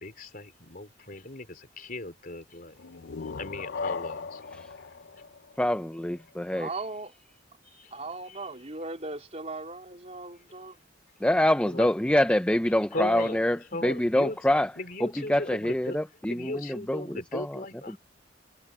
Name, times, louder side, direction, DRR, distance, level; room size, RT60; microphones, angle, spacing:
voice 1, 0.0-2.9 3.3-4.4 7.6-7.9 8.3-8.4 11.6-11.9 12.9-13.4 13.7-14.4 14.8-16.0 16.3-18.0, left 2 dB, 50° left, 3.6 m, -37 dB
sound 1, 2.8-6.3, left 4 dB, 65° left, 0.6 m, -38 dB
voice 2, 5.6-6.7 11.2-14.7 15.0-17.6 17.9-18.0, left 1 dB, 5° left, 0.5 m, -26 dB
voice 3, 6.6-7.1 7.9-10.8, right 3 dB, 35° right, 3.6 m, -38 dB
head